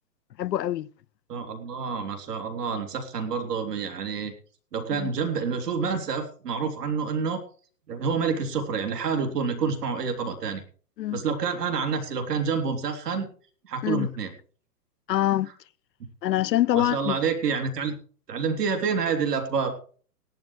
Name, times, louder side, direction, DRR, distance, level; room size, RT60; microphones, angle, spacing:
voice 1, 0.4-0.9 4.9-5.1 11.0-11.2 13.8-14.1 15.1-15.5 16.2-17.2, left 13 dB, 85° left, 0.6 m, -25 dB
voice 2, 1.3-4.3 4.7-7.4 7.9-10.6 11.1-13.3 13.6-14.3 16.7-17.9 18.3-19.7, right 5 dB, 70° right, 3.5 m, -28 dB
18.0 x 11.5 x 3.3 m
hypercardioid pair, 130°, 49 cm